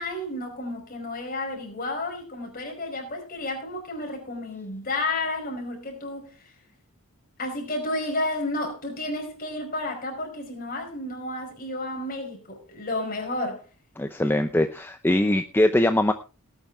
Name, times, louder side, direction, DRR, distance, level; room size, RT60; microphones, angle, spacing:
voice 1, 0.0-6.3 7.4-13.6, left 2 dB, 40° left, 5.0 m, -31 dB
voice 2, 14.0-16.1, left 1 dB, 10° left, 0.6 m, -22 dB
18.5 x 9.1 x 3.5 m
head